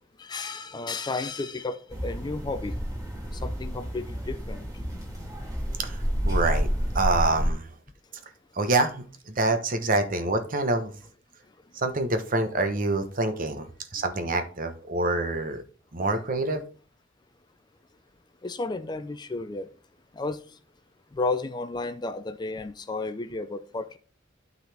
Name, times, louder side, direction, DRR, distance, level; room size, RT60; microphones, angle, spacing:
voice 1, 0.2-2.7 3.4-4.7 18.4-19.7 20.2-20.4 21.1-24.0, left 3 dB, 20° left, 0.4 m, -32 dB
sound 1, 1.9-7.5, equal, 20° right, 1.8 m, -29 dB
voice 2, 6.2-6.7 6.9-7.7 8.5-10.9 11.7-13.7 13.9-15.6 15.9-16.6, right 2 dB, 45° right, 1.0 m, -26 dB
12.0 x 4.0 x 3.4 m
head